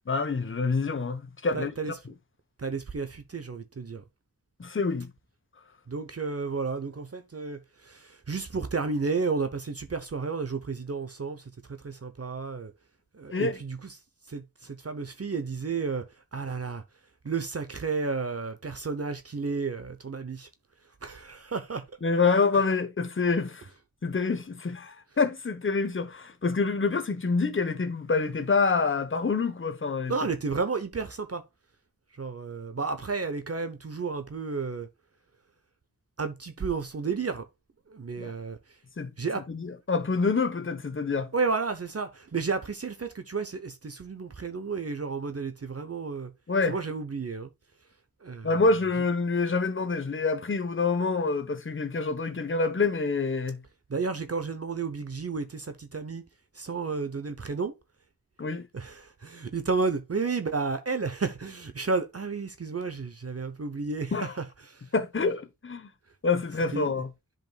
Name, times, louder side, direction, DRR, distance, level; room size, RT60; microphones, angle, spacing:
voice 1, 0.1-1.9 4.6-5.1 13.3-13.6 22.0-23.7 24.0-30.1 38.2-38.3 39.0-41.3 46.5-46.8 48.4-53.6 58.4-58.7 64.1-64.3 64.9-65.9 66.2-67.1, left 4 dB, 35° left, 0.9 m, -27 dB
voice 2, 1.5-1.9 2.6-4.0 5.9-11.4 11.8-12.7 13.1-13.9 14.3-16.0 16.3-16.8 17.2-20.5 21.0-21.8 30.1-31.4 32.2-34.9 36.2-37.4 37.9-38.6 39.2-39.4 41.3-46.3 46.7-47.5 48.2-48.5 53.9-56.2 56.6-57.7 58.7-64.8 66.7-66.9, right 4 dB, 40° right, 0.8 m, -32 dB
10.5 x 5.1 x 2.3 m
wide cardioid pair, 80°, 36 cm